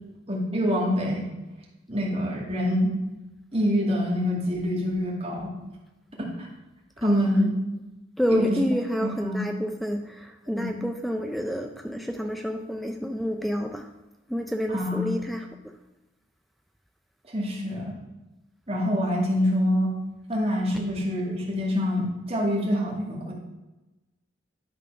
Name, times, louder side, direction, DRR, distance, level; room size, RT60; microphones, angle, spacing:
voice 1, 0.3-1.3 1.9-2.9 3.5-5.5 6.2-6.5 7.0-7.5 8.3-8.6 9.0-9.5 10.6-10.7 14.7-15.1 17.3-17.9 18.7-19.9 20.3-23.3, equal, 30° right, -4 dB, 2.3 m, -26 dB
voice 2, 7.0-7.3 8.2-13.9 14.3-15.7, equal, ahead, 4 dB, 0.4 m, -29 dB
11.5 x 4.1 x 5.6 m, 1.1 s
head